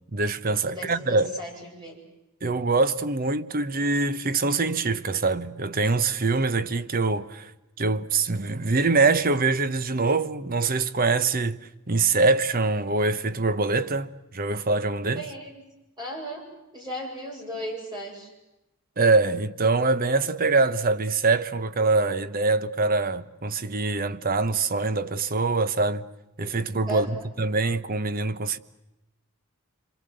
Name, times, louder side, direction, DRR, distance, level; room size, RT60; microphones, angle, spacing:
voice 1, 0.1-1.3 2.4-7.5 7.8-15.2 19.0-26.1 26.4-28.6, right 3 dB, 40° right, 0.9 m, -24 dB
voice 2, 0.7-2.0 15.2-15.6 16.0-16.5 16.7-18.3 26.9-27.2, equal, 20° right, 7.8 m, -36 dB
27.0 x 25.0 x 7.9 m
head